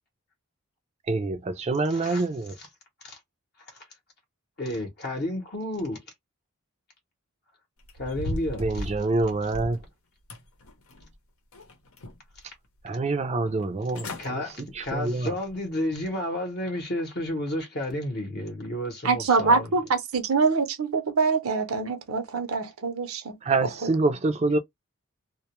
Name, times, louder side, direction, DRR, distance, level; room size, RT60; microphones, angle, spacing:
voice 1, 1.1-2.5 8.6-9.8 12.8-14.1 14.3-14.4 14.8-15.3 23.4-24.6, right 3 dB, 30° right, 0.4 m, -26 dB
voice 2, 1.8-2.3 2.6-2.7 3.0-3.2 3.7-3.9 4.6-6.0 8.0-8.9 9.4-9.5 14.2-19.7, left 1 dB, 50° left, 0.7 m, -31 dB
sound 1, 7.8-9.9 10.3-11.1 11.5-12.4 12.8-12.9 13.6-13.7 13.9-14.3 14.7-15.0 15.5-15.6, left 1 dB, 80° left, 0.7 m, -37 dB
voice 3, 19.0-23.9, right 4 dB, 80° right, 0.6 m, -25 dB
2.2 x 2.1 x 2.9 m
head